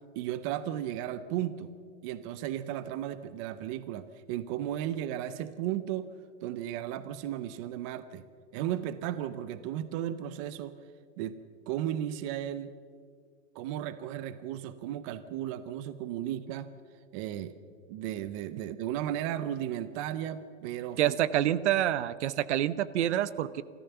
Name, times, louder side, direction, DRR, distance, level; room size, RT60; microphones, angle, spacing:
voice 1, 0.2-1.7 2.0-6.1 6.4-8.2 8.5-10.7 11.2-11.3 11.7-12.7 13.5-16.7 17.1-17.5 17.9-21.2, right 11 dB, 25° right, 13 dB, 0.5 m, -35 dB
voice 2, 21.0-23.6, right 12 dB, 65° right, 17 dB, 0.9 m, -27 dB
27.5 x 14.0 x 6.9 m, 2.1 s
supercardioid pair, 160°, 38 cm